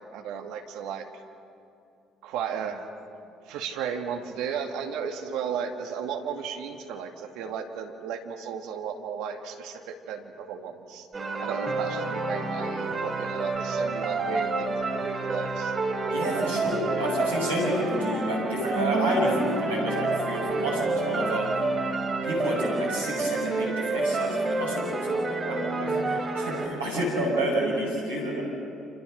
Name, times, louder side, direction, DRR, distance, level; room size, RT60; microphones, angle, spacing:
voice 1, 0.1-1.1 2.2-2.9 3.4-11.1 11.4-15.7 16.2-16.6, right 7 dB, 70° right, 5 dB, 2.1 m, -34 dB
sound 1, 11.1-26.7, right 3 dB, 35° right, 4.0 m, -29 dB
voice 2, 16.1-21.5 22.2-28.4, equal, 90° right, -4 dB, 6.9 m, -29 dB
29.0 x 28.5 x 6.6 m, 2.7 s
hypercardioid pair, 50°, 0 cm